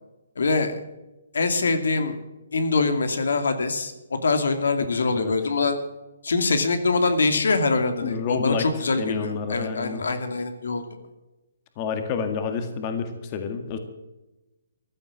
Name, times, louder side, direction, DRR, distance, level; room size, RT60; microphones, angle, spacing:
voice 1, 0.4-0.8 1.3-2.2 2.5-3.9 4.2-5.8 6.2-10.8, left 3 dB, 80° left, 8 dB, 2.5 m, -24 dB
voice 2, 8.0-8.7 9.0-10.0 11.8-13.8, left 6 dB, 30° left, 7 dB, 1.9 m, -29 dB
15.0 x 11.5 x 7.3 m, 1.0 s
hypercardioid pair, 155°, 0 cm